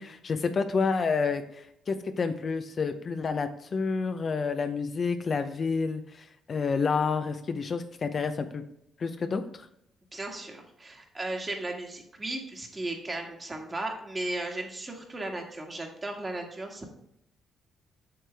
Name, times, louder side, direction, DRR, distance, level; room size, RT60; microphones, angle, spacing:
voice 1, 0.0-8.6 9.0-9.7, left 5 dB, 45° left, 8 dB, 0.6 m, -29 dB
voice 2, 10.1-16.8, right 2 dB, 25° right, 2 dB, 1.8 m, -36 dB
7.7 x 6.3 x 3.5 m, 0.76 s
cardioid pair, 90°, 0 cm